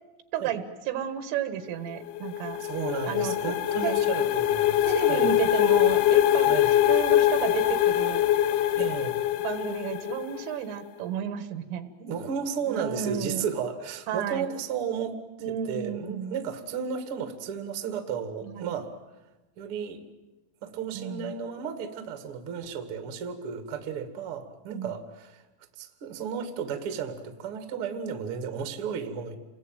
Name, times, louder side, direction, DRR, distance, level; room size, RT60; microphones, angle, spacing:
voice 1, 0.3-2.6 3.1-3.3 3.8-3.9 4.8-6.5 6.9-8.3 9.4-12.2 12.7-13.5 14.1-14.5 15.4-16.5 18.4-18.8 20.9-21.3 24.7-24.9, right 9 dB, 80° right, 10 dB, 4.1 m, -32 dB
sound 1, 1.9-10.6, left 12 dB, 75° left, 3.2 m, -23 dB
voice 2, 2.6-5.4 6.5-6.7 8.7-9.2 12.1-18.9 19.6-20.0 20.6-25.4 25.8-29.4, right 7 dB, 45° right, 7 dB, 1.9 m, -33 dB
29.0 x 21.0 x 9.1 m, 1.1 s
omnidirectional pair, 5.7 m